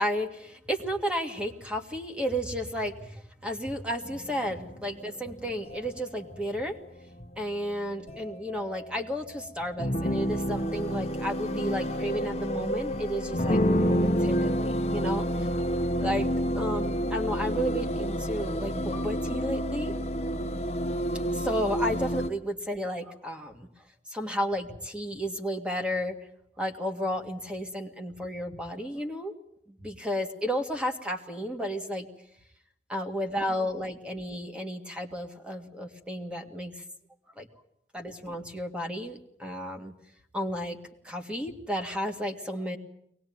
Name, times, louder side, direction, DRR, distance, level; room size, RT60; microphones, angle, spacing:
voice 1, 0.0-6.8 7.4-15.3 16.0-16.3 16.5-19.9 21.3-23.7 24.1-26.2 26.6-29.3 29.8-32.1 32.9-36.8 37.4-37.5 37.9-39.9 40.3-40.8 41.0-42.8, equal, 5° right, 4 dB, 2.0 m, -32 dB
sound 1, 4.0-22.3, equal, 35° left, 1.3 m, -30 dB
23.0 x 19.5 x 9.5 m, 0.75 s
head